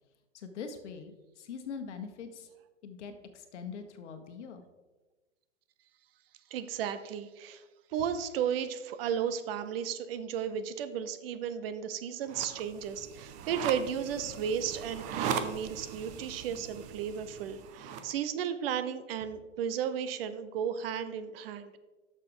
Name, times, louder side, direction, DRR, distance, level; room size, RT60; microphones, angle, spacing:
voice 1, 0.3-2.5 2.8-4.6, left 6 dB, 65° left, 8 dB, 1.3 m, -43 dB
voice 2, 6.5-7.6 7.9-21.8, right 8 dB, 50° right, 12 dB, 0.7 m, -34 dB
sound 1, 12.3-18.1, right 7 dB, 20° right, 0.4 m, -39 dB
9.7 x 6.6 x 3.8 m, 1.2 s
hypercardioid pair, 130°, 37 cm